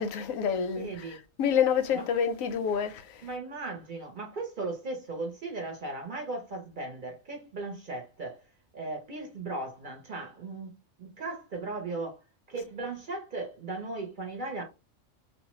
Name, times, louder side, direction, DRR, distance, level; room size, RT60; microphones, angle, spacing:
voice 1, 0.0-3.2, left 7 dB, 85° left, 1.0 m, -28 dB
voice 2, 0.8-1.2 1.9-2.0 3.2-8.4 8.7-12.2 12.5-14.6, right 3 dB, 50° right, 0.7 m, -37 dB
2.5 x 2.1 x 2.9 m
omnidirectional pair, 1.4 m